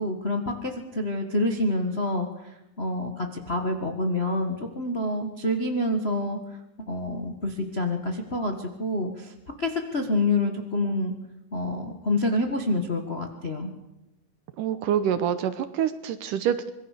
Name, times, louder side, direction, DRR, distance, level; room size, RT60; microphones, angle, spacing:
voice 1, 0.0-6.4 6.9-11.1 11.5-13.7, left 1 dB, 85° left, 4 dB, 0.5 m, -27 dB
voice 2, 14.6-16.7, right 9 dB, 70° right, 12 dB, 2.2 m, -26 dB
26.0 x 21.5 x 6.7 m, 0.93 s
omnidirectional pair, 4.5 m